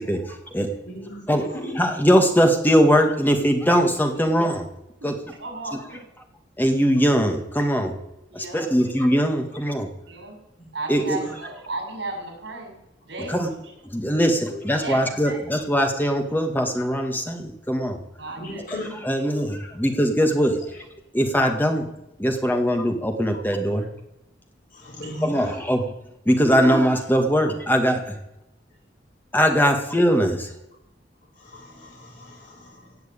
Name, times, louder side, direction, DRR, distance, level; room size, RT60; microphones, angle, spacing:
voice 1, 0.0-0.7 1.3-4.7 5.0-5.2 5.7-5.8 6.6-8.0 8.3-9.9 10.9-11.2 13.3-13.5 13.8-18.0 19.0-20.6 21.1-21.9 22.2-23.9 25.2-25.8 26.3-28.2 29.3-30.5, equal, 10° left, 4 dB, 1.8 m, -21 dB
voice 2, 0.8-1.8 3.4-3.5 11.1-11.3 14.5-14.7 18.4-19.0 20.6-20.7 24.7-25.6 26.4-26.8 31.3-33.0, equal, 55° left, -8 dB, 5.6 m, -35 dB
voice 3, 5.4-6.0 8.3-8.6 10.1-10.4 10.7-12.8 13.0-13.5 14.8-15.4 18.2-18.6 19.3-19.5 24.9-25.5, right 2 dB, 80° right, 2 dB, 5.8 m, -35 dB
17.0 x 6.6 x 8.7 m, 0.87 s
head